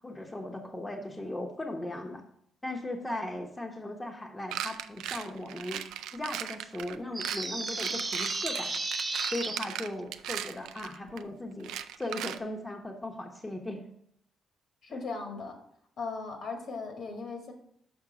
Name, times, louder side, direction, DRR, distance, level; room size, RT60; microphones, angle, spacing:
voice 1, 0.0-2.2 2.6-5.8 6.1-8.8 9.3-13.8 14.9-15.0, left 1 dB, 15° left, 1 dB, 1.0 m, -38 dB
sound 1, 4.5-11.2 11.6-12.4, right 11 dB, 90° right, 0.3 m, -38 dB
sound 2, 7.1-9.6, right 2 dB, 20° right, 0.8 m, -33 dB
voice 2, 14.8-15.6 16.0-17.5, left 4 dB, 60° left, 3 dB, 1.7 m, -37 dB
6.2 x 5.1 x 5.1 m, 0.71 s
cardioid pair, 90°, 0 cm